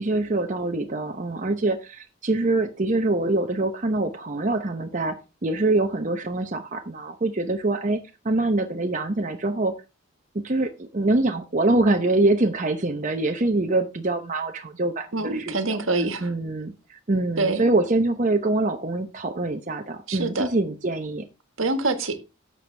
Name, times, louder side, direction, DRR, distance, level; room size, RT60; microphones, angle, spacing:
voice 1, 0.0-5.2 5.4-9.7 10.3-15.8 16.2-21.2, right 2 dB, 35° right, 0.8 m, -24 dB
voice 2, 15.1-16.3 17.4-17.7 20.1-20.5 21.6-22.2, right 3 dB, 70° right, 1.6 m, -25 dB
11.5 x 7.8 x 3.4 m
head